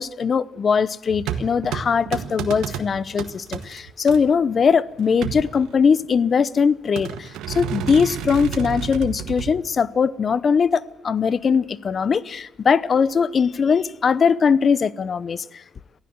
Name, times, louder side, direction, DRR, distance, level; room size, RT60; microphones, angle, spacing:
voice 1, 0.0-15.6, left 6 dB, 45° left, 0.8 m, -20 dB
sound 1, 1.1-4.2 5.0-6.1 7.0-9.6, right 8 dB, 90° right, 1.6 m, -30 dB
23.5 x 15.0 x 7.9 m
cardioid pair, 90°, 0 cm